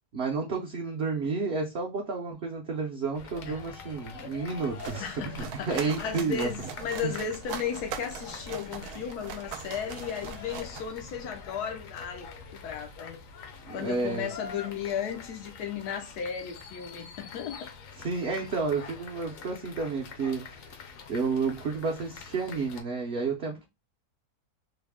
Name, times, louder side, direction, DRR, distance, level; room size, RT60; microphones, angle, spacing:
voice 1, 0.1-6.5 7.0-7.1 13.7-14.3 18.0-20.8 21.1-23.6, right 4 dB, 55° right, 0.7 m, -31 dB
sound 1, 3.1-22.8, left 5 dB, 65° left, 1.0 m, -45 dB
sound 2, 4.5-11.4, right 7 dB, 85° right, 1.1 m, -41 dB
voice 2, 5.0-12.3 12.6-13.2 13.7-17.6, left 7 dB, 90° left, 1.3 m, -35 dB
3.9 x 2.0 x 3.4 m
omnidirectional pair, 1.6 m